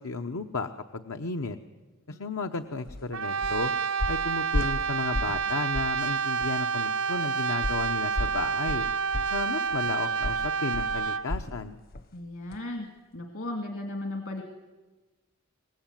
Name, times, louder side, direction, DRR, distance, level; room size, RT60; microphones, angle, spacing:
voice 1, 0.0-1.6 2.1-3.7 4.1-8.9 9.3-11.8, left 3 dB, 90° left, 6 dB, 0.9 m, -33 dB
sound 1, 2.9-3.0 3.4-3.7 4.0-5.5 5.7-6.0 6.4-6.5 7.6-11.6 11.9-12.2 12.5-12.6, left 1 dB, 45° left, 0.8 m, -33 dB
Brass instrument, 3.1-11.3, right 6 dB, 80° right, 1.0 m, -29 dB
voice 2, 12.1-14.4, left 1 dB, 70° left, 4 dB, 2.5 m, -36 dB
25.0 x 20.0 x 9.1 m, 1.2 s
head